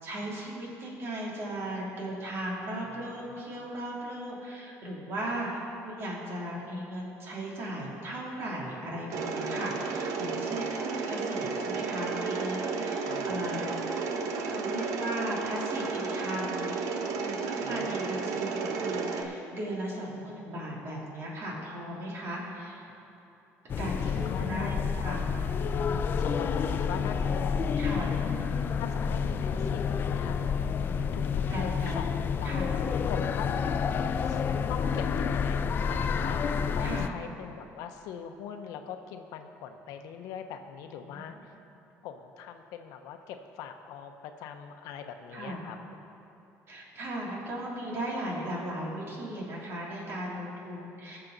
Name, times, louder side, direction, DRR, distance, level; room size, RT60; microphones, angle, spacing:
voice 1, 0.0-13.7 14.5-22.8 23.8-25.2 25.9-26.0 27.8-28.1 31.5-32.0 32.4-32.7 36.8-37.1 41.0-41.4 45.3-45.6 46.7-51.2, right 1 dB, 45° right, -3 dB, 2.9 m, -37 dB
Mechanisms, 9.1-19.2, right 4 dB, 70° right, 1.0 m, -32 dB
voice 2, 17.6-18.2 23.9-24.7 25.0-25.6 26.2-30.6 31.1-32.6 33.1-33.7 34.2-34.4 34.7-35.6 35.9-36.4 36.7-41.6 42.0-46.0, left 8 dB, 85° left, 7 dB, 0.8 m, -42 dB
sound 1, 23.7-37.1, left 6 dB, 40° left, 0.4 m, -29 dB
20.5 x 6.8 x 4.0 m, 2.9 s
cardioid pair, 135°, 6 cm